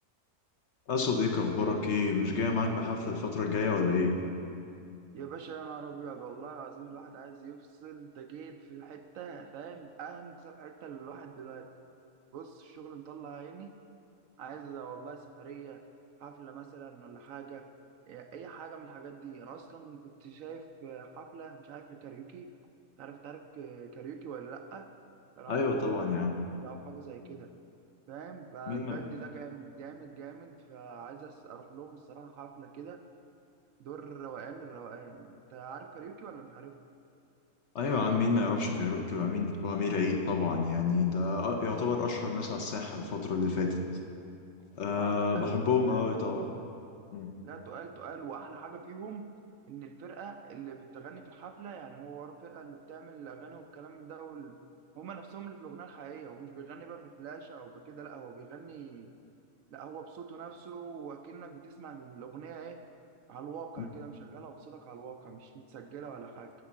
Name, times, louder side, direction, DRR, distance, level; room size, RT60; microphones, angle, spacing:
voice 1, 0.9-4.2 25.5-26.3 28.7-29.0 37.7-43.8 44.8-46.5 47.1-47.3, left 4 dB, 60° left, 3 dB, 0.9 m, -29 dB
voice 2, 5.1-11.7 12.3-13.8 14.4-15.8 16.2-17.7 18.1-22.5 23.0-24.9 25.4-26.3 26.6-27.5 28.1-33.0 33.8-36.8 44.9-46.1 47.4-49.3 49.7-54.6 55.0-59.1 59.7-62.8 63.3-66.5, right 6 dB, 70° right, 6 dB, 0.9 m, -45 dB
9.5 x 5.3 x 7.2 m, 2.5 s
omnidirectional pair, 1.6 m